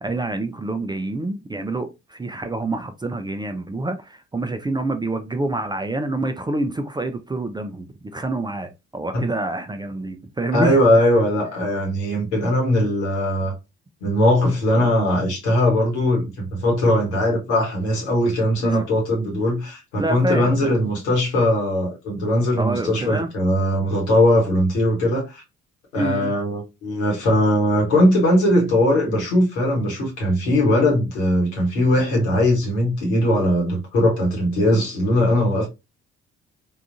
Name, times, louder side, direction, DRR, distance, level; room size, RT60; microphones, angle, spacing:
voice 1, 0.0-7.9 8.1-10.8 14.8-14.9 18.6-18.9 20.0-20.7 22.6-23.3 25.9-26.3, right 2 dB, 15° right, 0.4 m, -27 dB
voice 2, 10.5-13.5 14.0-25.4 25.9-35.7, left 1 dB, 80° left, 1.3 m, -20 dB
3.6 x 2.4 x 2.5 m
figure-of-eight pair, 45°, 32 cm